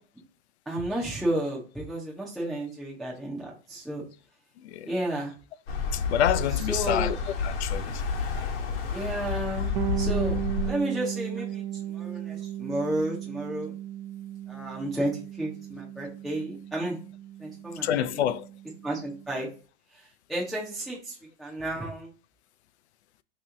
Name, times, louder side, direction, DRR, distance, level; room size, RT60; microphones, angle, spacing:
voice 1, 0.7-4.0 4.8-5.3 6.7-7.2 8.9-9.7 10.0-10.4 10.6-11.6 11.9-13.7 14.5-17.0 17.4-18.0 18.8-19.5 20.3-21.1 21.4-22.1, right 1 dB, ahead, 0.5 m, -32 dB
sound 1, 5.7-10.7, left 4 dB, 60° left, 1.1 m, -30 dB
voice 2, 5.9-7.2 7.4-8.0 17.8-18.5, left 11 dB, 75° left, 0.5 m, -27 dB
Bass guitar, 9.8-19.4, right 12 dB, 60° right, 0.5 m, -36 dB
3.0 x 3.0 x 3.6 m
supercardioid pair, 160°, 33 cm